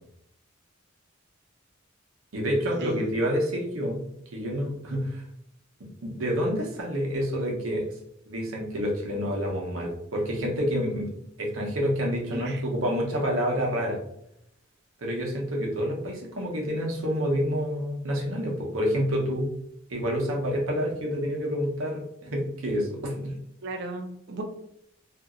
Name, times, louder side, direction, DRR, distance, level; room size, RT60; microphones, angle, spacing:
voice 1, 2.3-4.0 4.3-5.2 6.0-7.8 8.3-11.1 11.4-14.0 15.0-19.5 19.9-23.3, equal, 85° right, -1 dB, 0.8 m, -28 dB
voice 2, 12.3-12.6 23.6-24.4, right 2 dB, 55° right, 4 dB, 0.5 m, -35 dB
2.8 x 2.6 x 2.4 m, 0.74 s
head